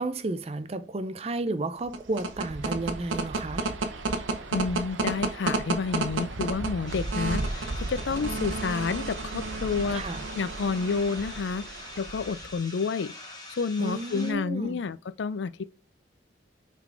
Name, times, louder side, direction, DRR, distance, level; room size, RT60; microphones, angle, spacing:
voice 1, 0.0-3.7 9.9-10.2 13.8-14.8, right 2 dB, 30° right, 0.5 m, -32 dB
sound 1, 1.8-12.6, right 3 dB, 85° right, 0.8 m, -32 dB
voice 2, 4.5-10.0 10.3-11.6 12.0-13.1 13.5-15.6, left 5 dB, 70° left, 0.4 m, -29 dB
sound 2, 6.9-14.3, left 2 dB, 20° left, 1.2 m, -44 dB
5.8 x 3.7 x 4.6 m
head